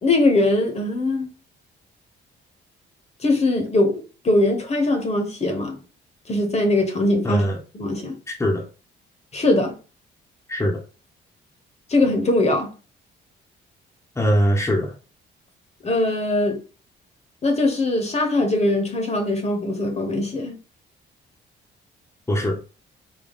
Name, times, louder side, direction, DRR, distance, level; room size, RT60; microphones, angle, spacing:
voice 1, 0.0-1.3 3.2-5.8 6.3-7.4 7.7-8.2 9.3-9.7 11.9-12.7 15.8-16.6 17.4-20.6, left 2 dB, 35° left, 1.0 m, -21 dB
voice 2, 7.2-7.6 8.3-8.6 10.5-10.8 14.2-14.9 22.3-22.6, equal, 15° left, 0.8 m, -21 dB
4.0 x 2.2 x 3.5 m
cardioid pair, 90°, 20 cm